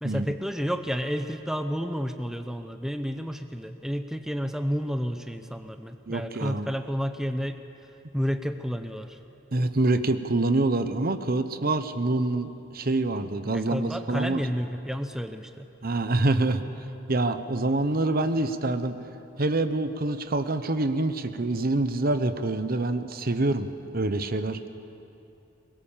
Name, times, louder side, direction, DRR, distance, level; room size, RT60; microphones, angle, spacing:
voice 1, 0.0-7.6 8.1-9.2 13.5-15.7, equal, 5° right, 7 dB, 0.7 m, -31 dB
voice 2, 6.1-6.7 9.5-14.4 15.8-16.6 17.1-18.9 19.4-23.7 23.9-24.6, right 2 dB, 50° right, 10 dB, 1.0 m, -26 dB
23.0 x 21.0 x 7.4 m, 2.8 s
head